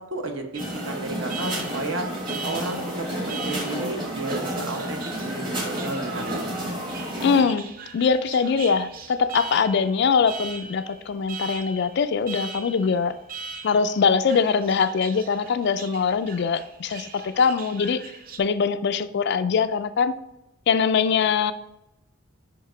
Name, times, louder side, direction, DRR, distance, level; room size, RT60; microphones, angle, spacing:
voice 1, 0.0-2.1 2.4-6.6, right 2 dB, 60° right, 4 dB, 0.9 m, -33 dB
Alarm, 0.5-18.4, right 5 dB, 45° right, 0.5 m, -41 dB
sound 1, 0.6-7.4, right 1 dB, 25° right, 1.1 m, -30 dB
voice 2, 7.2-13.2 13.6-18.0 18.4-20.1 20.7-21.5, left 5 dB, 55° left, 12 dB, 0.3 m, -22 dB
5.1 x 4.7 x 4.4 m, 0.88 s
head